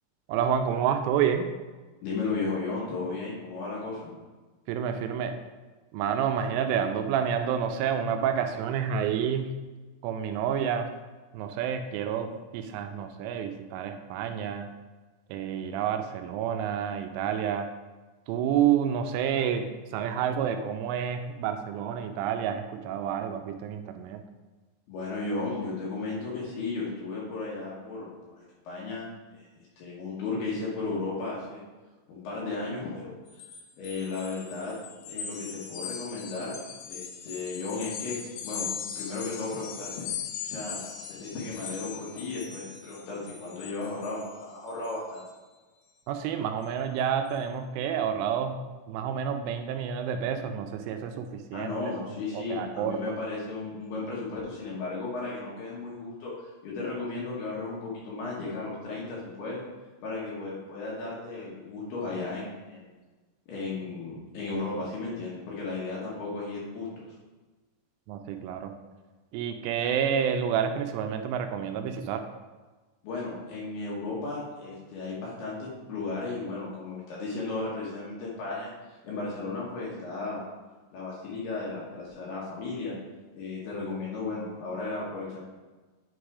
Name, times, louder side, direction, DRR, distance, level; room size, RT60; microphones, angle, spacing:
voice 1, 0.3-1.5 4.7-5.3 5.9-9.5 10.0-10.9 11.3-12.3 12.5-14.7 15.3-17.7 18.3-24.2 46.1-48.6 48.9-51.3 51.5-51.7 52.3-53.2 68.1-68.7 69.3-72.2, right 8 dB, 85° right, 6 dB, 3.0 m, -29 dB
voice 2, 2.0-4.1 24.9-31.6 32.1-33.1 33.8-34.7 35.1-36.6 36.9-38.7 39.0-40.1 40.4-45.3 51.5-59.6 60.0-62.9 63.5-67.1 73.0-80.4 80.9-82.9 83.3-85.4, left 3 dB, 65° left, -5 dB, 2.7 m, -35 dB
sound 1, 33.3-45.3, left 7 dB, 85° left, 2.5 m, -40 dB
9.7 x 3.6 x 4.8 m, 1.3 s
omnidirectional pair, 5.8 m